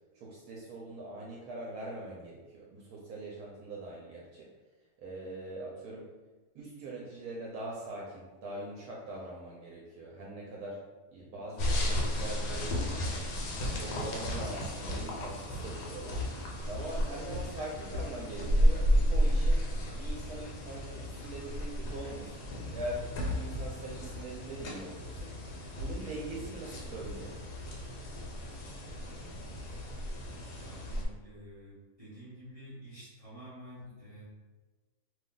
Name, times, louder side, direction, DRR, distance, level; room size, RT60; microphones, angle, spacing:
voice 1, 0.1-4.5 5.0-6.0 6.5-10.8 11.1-13.2 13.7-22.4 22.7-23.0 23.3-25.5 25.8-27.3, right 2 dB, 75° right, -3 dB, 1.0 m, -42 dB
sound 1, 11.6-31.1, equal, 85° left, 1.2 m, -33 dB
voice 2, 30.5-34.2, equal, 25° right, -10 dB, 1.0 m, -49 dB
2.7 x 2.3 x 3.7 m, 1.2 s
omnidirectional pair, 1.7 m